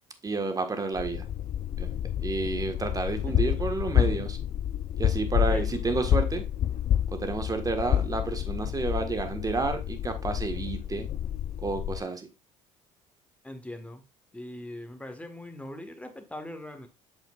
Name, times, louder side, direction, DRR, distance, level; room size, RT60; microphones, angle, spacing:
voice 1, 0.2-1.2 1.8-1.9 2.2-4.4 5.0-6.4 7.1-11.1 11.6-12.3, right 3 dB, 20° right, 1.6 m, -30 dB
sound 1, 1.0-12.0, left 10 dB, 45° left, 0.6 m, -29 dB
voice 2, 3.2-3.7 5.5-5.7 13.4-14.0 14.3-16.9, left 1 dB, 10° left, 1.7 m, -41 dB
7.6 x 7.5 x 2.5 m
hypercardioid pair, 65°, 17 cm